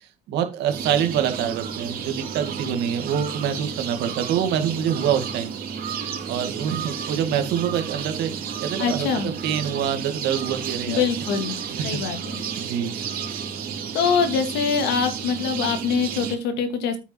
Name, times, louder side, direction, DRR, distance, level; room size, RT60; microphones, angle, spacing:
voice 1, 0.3-5.5 6.3-11.0 12.6-12.9, right 9 dB, 80° right, 6 dB, 2.3 m, -25 dB
sound 1, 0.7-16.3, right 7 dB, 60° right, 3.5 m, -32 dB
voice 2, 8.8-9.3 10.9-11.6 11.8-12.4 13.9-17.0, left 6 dB, 85° left, 8 dB, 2.4 m, -24 dB
9.4 x 6.9 x 4.5 m, 0.28 s
cardioid pair, 110°, 17 cm